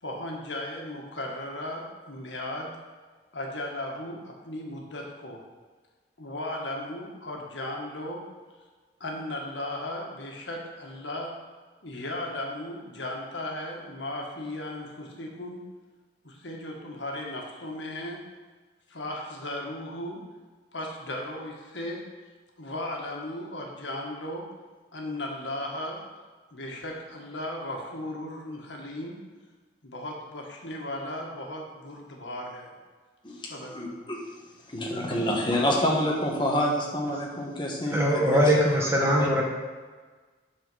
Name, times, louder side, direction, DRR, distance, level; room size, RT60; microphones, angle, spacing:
voice 1, 0.0-2.8 3.3-5.4 6.2-8.2 9.0-11.3 11.8-15.6 16.2-18.2 18.9-20.2 20.7-22.0 22.6-24.5 24.9-26.0 26.5-29.2 29.8-32.8 33.3-34.1, left 1 dB, 90° left, 0 dB, 1.5 m, -36 dB
voice 2, 33.7-34.2 34.7-38.6 39.0-39.3, equal, 25° left, -2 dB, 1.3 m, -27 dB
voice 3, 37.9-39.4, equal, 15° right, -2 dB, 1.2 m, -22 dB
7.8 x 4.3 x 6.2 m, 1.4 s
head